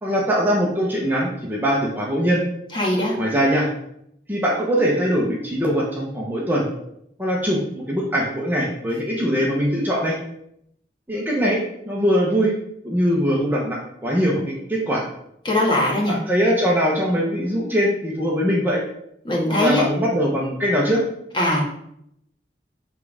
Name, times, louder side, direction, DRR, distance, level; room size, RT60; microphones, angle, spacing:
voice 1, 0.0-2.4 3.2-3.7 4.3-6.6 7.2-7.6 7.9-10.1 11.1-12.5 12.8-14.4 14.7-15.0 16.1-18.8 19.6-21.0, equal, 10° right, -4 dB, 1.0 m, -21 dB
voice 2, 2.7-3.1 15.4-16.1 19.3-19.8 21.3-21.6, left 1 dB, 25° left, -3 dB, 1.6 m, -20 dB
7.6 x 3.6 x 4.9 m, 0.75 s
head